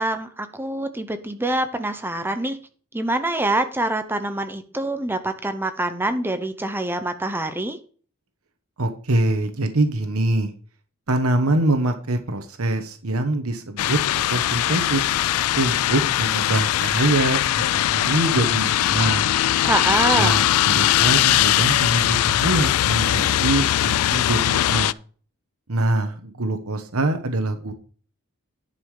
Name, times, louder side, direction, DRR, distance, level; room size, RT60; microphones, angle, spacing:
voice 1, 0.0-2.6 2.9-7.8 19.6-20.4, right 1 dB, 10° right, 8 dB, 0.8 m, -25 dB
voice 2, 8.8-10.5 11.1-14.0 14.3-15.1 15.6-19.4 20.2-24.9 25.7-27.7, right 2 dB, 70° right, 7 dB, 1.1 m, -24 dB
sound 1, 13.8-24.9, left 13 dB, 80° left, 0.3 m, -20 dB
11.0 x 5.6 x 4.9 m, 0.42 s
head